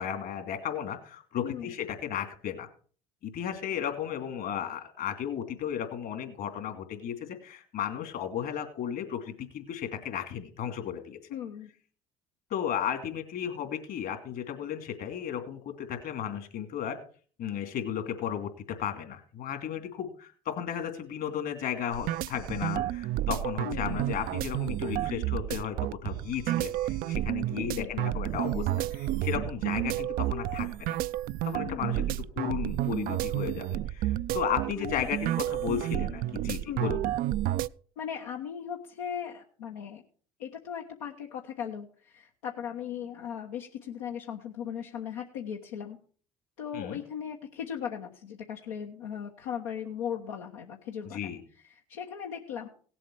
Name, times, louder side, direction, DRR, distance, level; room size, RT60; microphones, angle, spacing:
voice 1, 0.0-2.7 3.2-11.2 12.5-17.0 17.4-31.0 31.4-37.0 46.7-47.0 51.1-51.4, left 9 dB, 60° left, 6 dB, 2.7 m, -34 dB
voice 2, 1.4-1.7 11.3-11.7 23.6-24.0 27.6-27.9 31.6-32.1 34.8-35.1 36.7-37.0 38.0-40.0 40.4-46.0 46.6-51.4 51.7-52.7, left 8 dB, 85° left, 0 dB, 1.2 m, -38 dB
sound 1, 21.9-37.7, right 14 dB, 55° right, 0.4 m, -31 dB
17.5 x 7.7 x 4.7 m, 0.43 s
hypercardioid pair, 65°, 18 cm